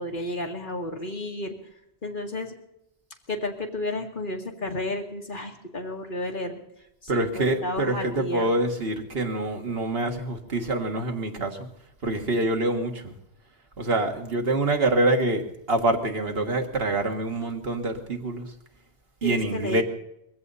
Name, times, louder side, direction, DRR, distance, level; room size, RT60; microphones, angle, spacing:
voice 1, 0.0-1.5 2.0-2.5 3.3-6.6 7.0-8.5 19.2-19.8, left 1 dB, 50° left, 2 dB, 2.2 m, -32 dB
voice 2, 7.1-11.7 12.0-13.2 13.8-18.5 19.2-19.8, right 2 dB, 65° right, 3 dB, 2.0 m, -26 dB
21.5 x 16.0 x 4.1 m, 0.79 s
omnidirectional pair, 1.1 m